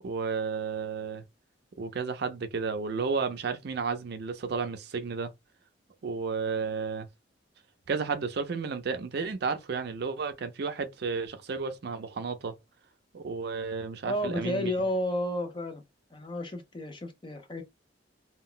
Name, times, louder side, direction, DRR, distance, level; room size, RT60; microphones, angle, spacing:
voice 1, 0.0-1.2 1.8-5.3 6.0-7.1 7.9-12.6 13.1-14.7, right 5 dB, 60° right, 0.5 m, -32 dB
voice 2, 14.0-15.8 16.1-17.6, left 1 dB, 25° left, 0.6 m, -31 dB
2.3 x 2.0 x 3.7 m
head